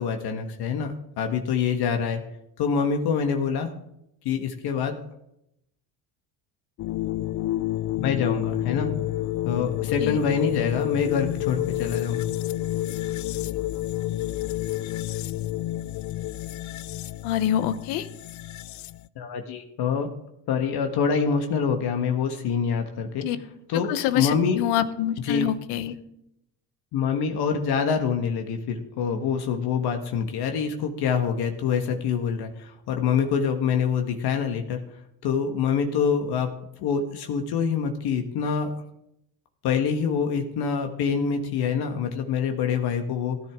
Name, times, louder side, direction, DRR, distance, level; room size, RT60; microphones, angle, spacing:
voice 1, 0.0-2.2 2.6-3.7 4.2-5.0 8.0-8.9 9.4-12.3 19.1-20.1 20.5-23.3 23.7-24.7 25.2-25.5 26.9-34.8 35.2-36.5 36.8-38.7 39.6-43.4, left 6 dB, 65° left, 5 dB, 1.5 m, -25 dB
sound 1, 6.8-19.1, left 14 dB, 45° left, 0.5 m, -29 dB
voice 2, 17.2-18.1 23.2-23.4 23.9-26.0, left 11 dB, 85° left, 12 dB, 1.0 m, -26 dB
15.5 x 10.5 x 3.7 m, 0.79 s
supercardioid pair, 90°, 41 cm